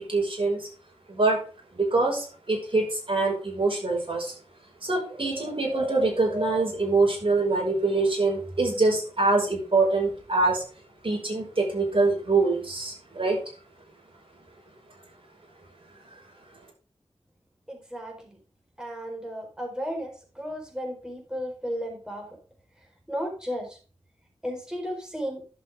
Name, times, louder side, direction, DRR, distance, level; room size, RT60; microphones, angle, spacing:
voice 1, 0.1-0.7 1.1-1.4 1.7-4.3 4.8-10.6 11.0-13.4, right 3 dB, 55° right, -1 dB, 5.6 m, -24 dB
voice 2, 17.7-18.1 18.8-20.1 20.4-22.3 23.1-23.7 24.4-25.4, equal, 5° right, 0 dB, 4.4 m, -33 dB
11.5 x 7.8 x 3.6 m, 0.36 s
wide cardioid pair, 55°, 11 cm